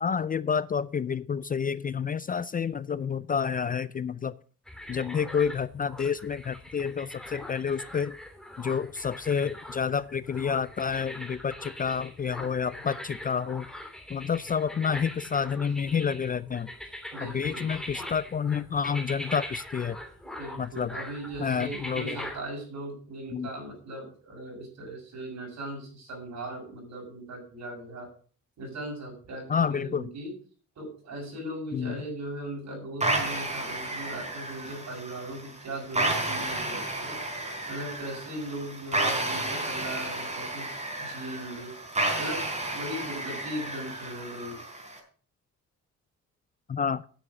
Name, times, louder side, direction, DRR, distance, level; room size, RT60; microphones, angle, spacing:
voice 1, 0.0-4.3 4.9-8.2 8.6-13.7 14.1-16.7 17.2-20.0 20.6-21.0 21.4-22.2 23.3-23.5 29.5-30.1 31.7-32.0 46.7-47.0, left 6 dB, 30° left, 18 dB, 0.4 m, -29 dB
sound 1, 4.7-22.4, left 1 dB, ahead, 2.9 m, -42 dB
voice 2, 17.1-17.7 20.4-28.1 28.6-30.3 30.7-37.2 37.7-40.7 41.0-41.7 42.2-42.4 42.7-44.6, right 1 dB, 65° right, 1 dB, 6.8 m, -38 dB
sound 2, 33.0-45.0, right 2 dB, 25° right, 4.1 m, -32 dB
10.0 x 7.4 x 6.2 m, 0.43 s
cardioid pair, 90°, 30 cm